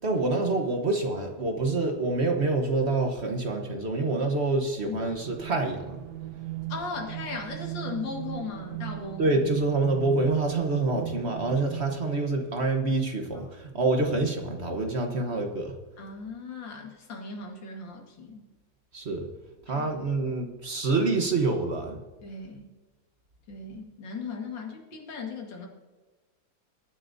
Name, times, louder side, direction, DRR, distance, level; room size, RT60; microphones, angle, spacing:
voice 1, 0.0-6.0 9.2-15.8 18.9-19.3 19.7-22.0, right 3 dB, 40° right, 4 dB, 1.2 m, -27 dB
sound 1, 4.9-12.6, right 16 dB, 70° right, 1.2 m, -38 dB
voice 2, 6.7-9.4 13.3-13.4 16.0-18.4 19.8-19.9 22.2-22.7 23.5-25.7, left 4 dB, 80° left, 1 dB, 2.5 m, -37 dB
22.0 x 9.8 x 2.7 m, 1.3 s
omnidirectional pair, 2.0 m